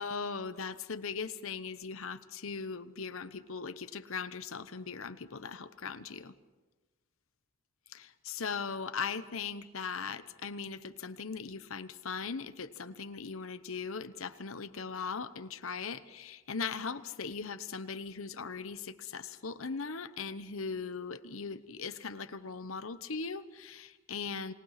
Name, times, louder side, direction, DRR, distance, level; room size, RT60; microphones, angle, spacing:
voice 1, 0.0-6.3 7.9-24.5, left 5 dB, 70° left, 13 dB, 1.0 m, -39 dB
29.0 x 19.5 x 5.8 m, 1.2 s
head